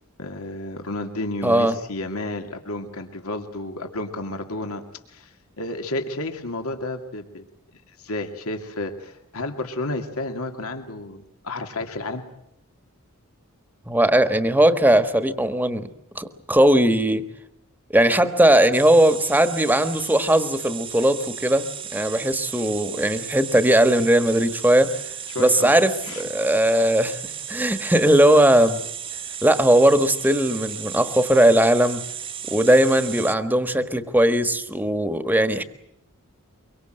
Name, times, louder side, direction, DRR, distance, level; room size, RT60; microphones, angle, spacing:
voice 1, 0.2-4.8 5.1-7.5 7.9-12.2 25.3-25.7 26.0-26.2, left 2 dB, 80° left, 5 dB, 2.5 m, -31 dB
voice 2, 1.4-1.7 13.9-15.9 16.1-17.3 17.9-21.7 21.9-24.9 25.4-28.8 29.4-32.0 32.4-35.6, right 1 dB, 10° right, 10 dB, 1.4 m, -19 dB
sound 1, 18.7-33.4, right 8 dB, 25° right, 1.0 m, -35 dB
24.5 x 24.0 x 7.8 m, 0.77 s
head